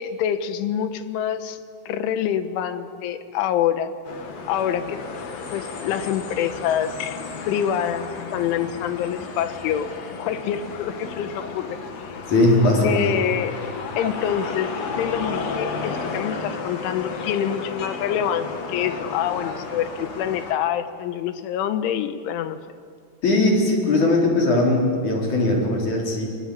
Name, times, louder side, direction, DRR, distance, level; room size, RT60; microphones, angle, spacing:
voice 1, 0.0-1.6 1.9-3.9 4.5-5.0 5.5-7.2 7.5-9.9 10.2-11.8 12.8-13.6 14.0-22.6, left 9 dB, 75° left, 10 dB, 3.4 m, -26 dB
sound 1, 4.0-20.5, left 4 dB, 55° left, 2.0 m, -33 dB
voice 2, 12.3-13.1 23.2-26.3, left 2 dB, 40° left, -1 dB, 5.1 m, -19 dB
22.0 x 22.0 x 9.9 m, 2.1 s
omnidirectional pair, 5.9 m